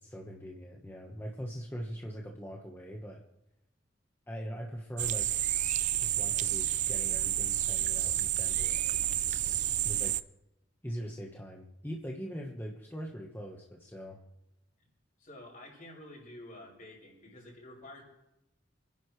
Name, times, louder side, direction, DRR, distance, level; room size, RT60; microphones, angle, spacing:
voice 1, 0.0-3.2 4.3-5.6 6.0-9.6 9.8-10.2 10.8-14.2, equal, 10° left, 0 dB, 1.3 m, -42 dB
sound 1, 5.0-10.2, right 12 dB, 40° right, 0.4 m, -30 dB
voice 2, 15.2-18.0, left 1 dB, 45° left, -3 dB, 6.7 m, -49 dB
29.5 x 10.5 x 3.3 m, 0.92 s
head